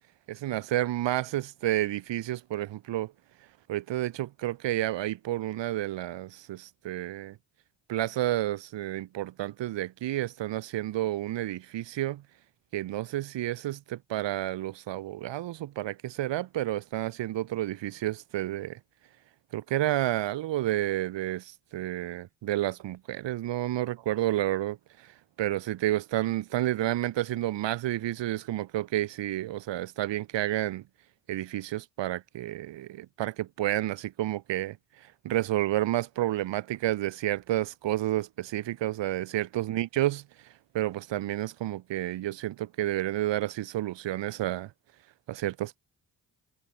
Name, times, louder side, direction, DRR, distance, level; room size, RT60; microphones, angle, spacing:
voice 1, 0.3-3.1 3.7-7.4 7.9-12.2 12.7-18.8 19.5-24.8 25.4-30.8 31.3-34.8 35.2-40.2 40.7-44.7 45.3-45.8, right 14 dB, 70° right, 1.1 m, -30 dB
hypercardioid pair, 40°, 46 cm